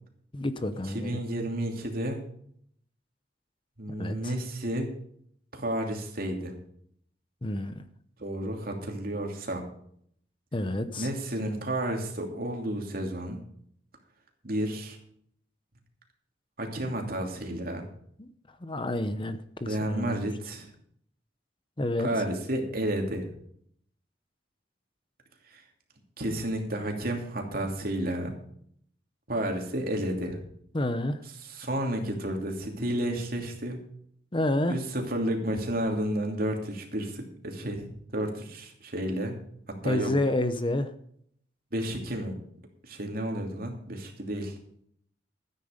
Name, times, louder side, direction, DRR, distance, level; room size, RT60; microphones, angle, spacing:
voice 1, 0.3-1.2 4.0-4.3 7.4-7.9 10.5-11.1 18.2-18.3 18.6-20.2 21.8-22.1 30.7-31.2 34.3-34.8 39.8-40.9, left 1 dB, 30° left, 10 dB, 0.9 m, -29 dB
voice 2, 0.9-2.2 3.8-4.9 5.5-6.5 8.2-9.7 11.0-13.4 14.4-15.0 16.6-17.9 19.7-20.7 22.0-23.3 25.5-25.6 26.2-28.3 29.3-30.4 31.4-33.8 34.7-37.9 38.1-39.3 39.8-40.1 41.7-42.4 42.8-44.6, right 1 dB, 55° right, 2 dB, 2.8 m, -31 dB
13.5 x 9.7 x 5.1 m, 0.65 s
head